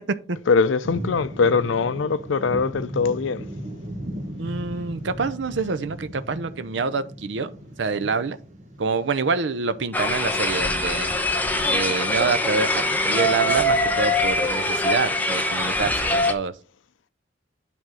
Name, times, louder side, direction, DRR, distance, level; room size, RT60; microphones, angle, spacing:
voice 1, 0.5-3.4, left 5 dB, 85° left, 0.5 m, -22 dB
sound 1, 0.8-10.8, equal, 40° right, 1.3 m, -37 dB
voice 2, 4.4-7.5 7.8-8.4 8.8-11.1 11.7-16.5, right 4 dB, 70° right, 0.6 m, -26 dB
sound 2, 9.9-16.3, left 1 dB, 10° left, 0.8 m, -23 dB
9.1 x 3.6 x 6.1 m
head